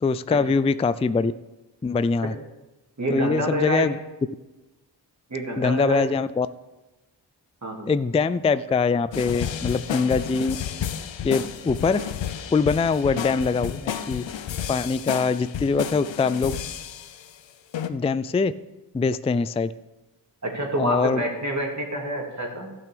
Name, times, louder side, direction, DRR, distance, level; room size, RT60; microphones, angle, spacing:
voice 1, 0.0-1.3 1.8-2.3 3.1-4.0 5.6-6.5 7.9-10.6 11.2-12.0 12.5-14.2 14.7-16.5 17.9-18.5 18.9-19.7 20.8-21.2, left 4 dB, 15° left, 14 dB, 0.3 m, -23 dB
voice 2, 3.0-3.9 5.3-6.1 7.6-7.9 11.2-11.4 20.4-22.7, right 1 dB, 40° right, 0 dB, 2.5 m, -28 dB
sound 1, 9.1-17.3 17.7-17.9, left 9 dB, 80° left, 0.8 m, -32 dB
12.5 x 6.1 x 6.8 m, 1.1 s
cardioid pair, 65°, 44 cm